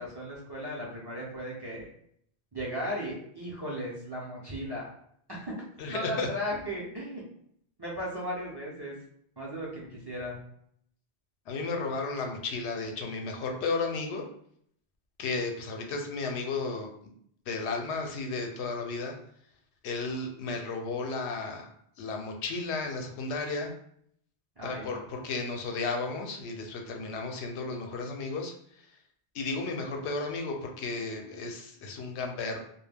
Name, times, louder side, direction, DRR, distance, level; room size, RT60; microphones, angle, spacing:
voice 1, 0.0-1.9 2.5-4.9 5.3-5.5 5.9-7.2 7.8-9.0 9.4-10.4 24.6-25.1, equal, 35° right, -6 dB, 0.4 m, -36 dB
voice 2, 5.8-6.3 11.5-14.2 15.2-16.9 17.5-19.1 19.8-21.7 22.0-23.7 24.6-28.5 29.3-32.6, left 3 dB, 85° left, 3 dB, 0.8 m, -33 dB
2.2 x 2.1 x 3.3 m, 0.67 s
omnidirectional pair, 1.1 m